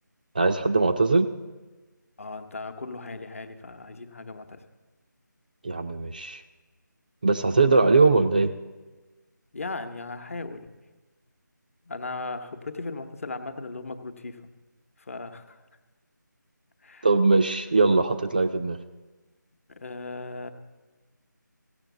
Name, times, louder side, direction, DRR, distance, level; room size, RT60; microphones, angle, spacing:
voice 1, 0.4-1.3 5.6-6.4 7.2-8.5 17.0-18.8, right 3 dB, 25° right, 7 dB, 0.4 m, -21 dB
voice 2, 2.2-4.6 9.5-10.7 11.8-14.4 15.0-15.6 16.8-17.1 19.7-20.5, left 3 dB, 45° left, 7 dB, 1.0 m, -37 dB
15.5 x 7.1 x 8.2 m, 1.2 s
figure-of-eight pair, 165°, 10 cm